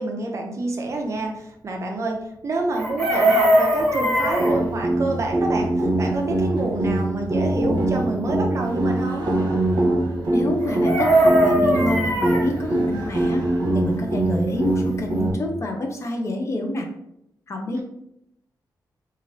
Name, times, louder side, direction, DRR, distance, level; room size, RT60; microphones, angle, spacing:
voice 1, 0.0-2.2 2.4-9.3 17.7-17.8, right 2 dB, 40° right, 1 dB, 0.5 m, -28 dB
Chicken rooster, 2.7-4.6 10.6-12.4 14.7-14.8 15.0-15.3, right 1 dB, ahead, 1.3 m, -19 dB
sound 1, 4.4-15.3, right 1 dB, 70° right, 0.8 m, -23 dB
voice 2, 10.3-13.4 13.7-16.9 17.5-17.8, left 1 dB, 40° left, 3 dB, 0.4 m, -28 dB
3.1 x 2.4 x 2.6 m, 0.79 s
wide cardioid pair, 140°, 7 cm